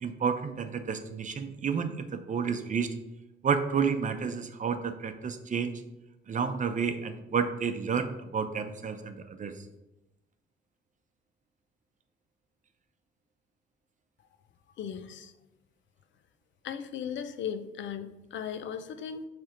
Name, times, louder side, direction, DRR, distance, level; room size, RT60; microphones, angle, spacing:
voice 1, 0.0-2.9 3.4-5.7 6.3-9.6, right 6 dB, 40° right, 8 dB, 0.7 m, -30 dB
voice 2, 14.8-15.3 16.6-19.3, left 8 dB, 70° left, 11 dB, 0.6 m, -37 dB
7.3 x 3.4 x 5.1 m, 0.97 s
cardioid pair, 90°, 20 cm